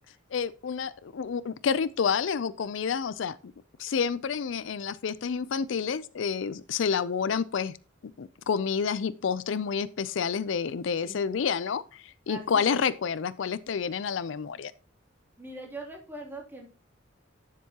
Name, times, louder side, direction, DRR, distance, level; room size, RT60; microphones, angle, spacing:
voice 1, 0.3-3.4 3.8-7.8 8.2-14.7, left 6 dB, 70° left, 0.4 m, -29 dB
voice 2, 12.3-12.8 15.4-16.7, right 2 dB, 10° right, 2.8 m, -42 dB
10.5 x 7.5 x 2.9 m
head